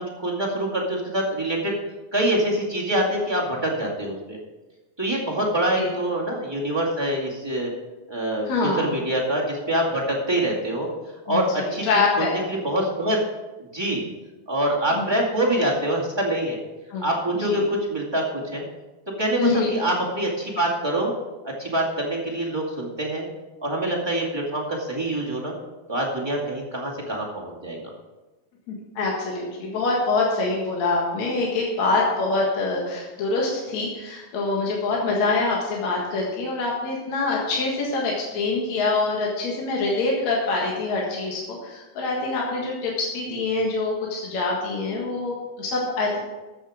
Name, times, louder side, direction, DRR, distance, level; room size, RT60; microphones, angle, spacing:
voice 1, 0.2-1.7 2.1-4.4 5.0-7.7 8.1-10.9 11.2-13.2 13.6-14.0 14.5-16.6 17.0-18.6 19.2-21.1 21.6-23.3 23.6-25.5 25.9-27.9, right 1 dB, 10° right, -4 dB, 1.4 m, -25 dB
voice 2, 8.5-8.9 11.3-12.4 14.9-15.1 16.9-17.1 17.5-17.6 19.4-19.7 28.7-46.2, left 3 dB, 55° left, -3 dB, 2.7 m, -25 dB
13.5 x 8.3 x 5.0 m, 1.1 s
omnidirectional pair, 4.1 m